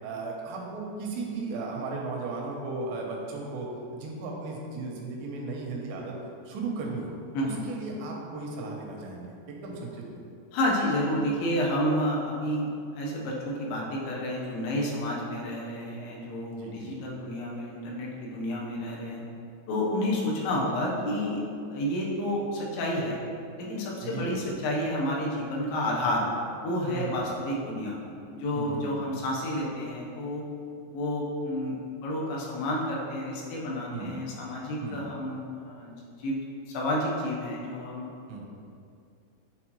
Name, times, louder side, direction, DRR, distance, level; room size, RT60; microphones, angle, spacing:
voice 1, 0.0-3.7 3.9-6.1 6.5-7.1 7.4-10.2 16.5-17.0 24.0-24.3 26.9-27.3 28.5-29.1 33.9-34.1 34.8-35.0 38.3-38.4, right 3 dB, 80° right, -1 dB, 2.9 m, -36 dB
voice 2, 10.5-12.7 12.9-19.2 19.7-21.4 21.7-23.2 23.6-26.2 26.6-28.0 28.4-30.4 30.9-35.9 36.2-36.4 36.7-38.0, left 1 dB, 85° left, -3 dB, 3.3 m, -30 dB
10.0 x 4.0 x 3.0 m, 2.5 s
omnidirectional pair, 5.1 m